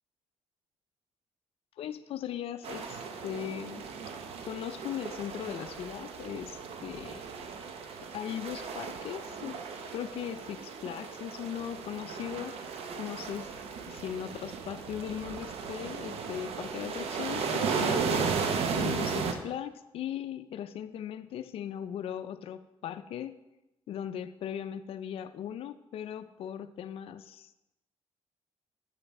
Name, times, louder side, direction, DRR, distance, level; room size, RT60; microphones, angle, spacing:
voice 1, 1.8-3.9 4.5-7.2 8.0-9.6 9.9-12.6 13.0-13.5 13.9-18.3 18.8-23.4 23.9-27.5, left 10 dB, 65° left, 10 dB, 0.4 m, -38 dB
sound 1, 2.6-19.3, right 5 dB, 70° right, 0.8 m, -35 dB
7.6 x 5.6 x 4.2 m, 0.93 s
cardioid pair, 85°, 10 cm